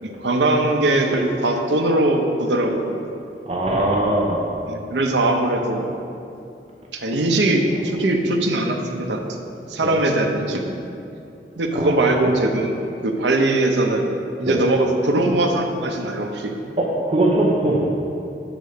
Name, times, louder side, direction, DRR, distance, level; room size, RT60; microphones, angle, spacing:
voice 1, 0.0-3.0 4.6-5.9 6.9-9.4 9.7-10.8 11.6-12.8 13.0-14.1 14.4-16.6, right 2 dB, 80° right, 3 dB, 0.7 m, -21 dB
voice 2, 3.5-4.4 9.8-10.0 11.7-12.1 14.5-14.6 16.8-17.9, right 1 dB, 35° right, -3 dB, 0.7 m, -20 dB
6.8 x 4.0 x 6.5 m, 2.6 s
head